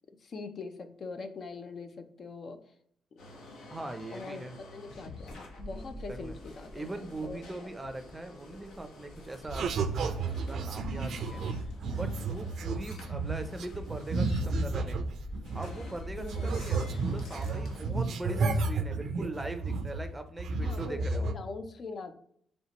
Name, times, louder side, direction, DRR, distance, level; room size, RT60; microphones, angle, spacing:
voice 1, 0.2-2.6 4.1-7.7 16.2-16.7 20.6-22.1, left 4 dB, 50° left, 8 dB, 0.5 m, -43 dB
sound 1, 3.2-17.9, left 1 dB, 80° left, 1.0 m, -46 dB
voice 2, 3.7-4.6 5.7-6.4 6.7-11.4 11.9-15.0 15.5-21.3, right 2 dB, 15° right, 8 dB, 0.5 m, -41 dB
sound 2, 9.5-15.9 16.2-20.1 20.4-21.3, right 3 dB, 65° right, 0.4 m, -32 dB
4.3 x 3.3 x 2.9 m, 0.64 s
cardioid pair, 90°, 0 cm